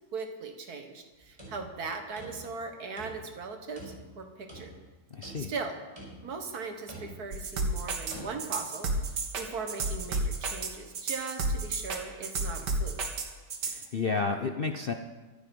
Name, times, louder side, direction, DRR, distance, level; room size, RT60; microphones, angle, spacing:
voice 1, 0.1-4.7 5.4-5.8 6.2-13.0, right 4 dB, 65° right, 6 dB, 2.0 m, -39 dB
sound 1, 1.1-2.7 3.0-3.4 3.8-4.9 5.2-5.7 6.0-6.4 6.9-7.4 8.1-8.3, right 1 dB, 15° right, 5.5 m, -46 dB
voice 2, 5.1-5.5 13.6-14.9, left 4 dB, 50° left, 5 dB, 0.7 m, -31 dB
sound 2, 7.3-13.9, right 3 dB, 85° right, 2.2 m, -31 dB
24.0 x 8.7 x 5.4 m, 1.3 s
omnidirectional pair, 1.8 m